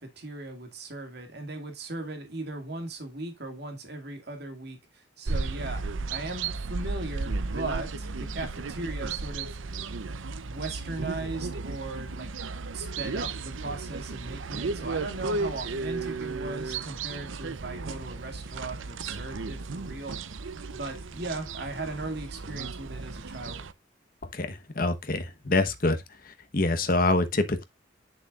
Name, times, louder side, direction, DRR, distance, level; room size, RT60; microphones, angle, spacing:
voice 1, 0.0-9.6 10.3-12.3 12.7-20.2 20.7-23.6, right 2 dB, 55° right, 2.1 m, -38 dB
sound 1, 5.3-23.7, right 3 dB, 85° right, 0.7 m, -34 dB
voice 2, 24.3-26.0 26.2-27.6, left 2 dB, 45° left, 1.1 m, -26 dB
8.2 x 6.9 x 2.5 m
head